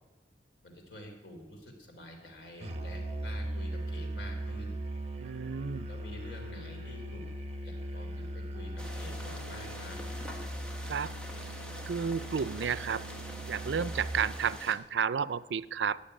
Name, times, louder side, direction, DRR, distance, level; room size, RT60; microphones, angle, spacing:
voice 1, 0.6-4.8 5.9-7.3 7.6-10.0, left 1 dB, 80° left, 2 dB, 3.3 m, -48 dB
Musical instrument, 2.6-14.5, right 1 dB, 35° right, 1.1 m, -39 dB
voice 2, 5.2-5.9 10.9-11.1 11.8-13.0 13.5-16.0, right 7 dB, 85° right, 18 dB, 0.4 m, -32 dB
sound 1, 8.8-14.7, equal, 5° left, 1.3 m, -45 dB
13.0 x 7.3 x 10.0 m, 1.2 s
head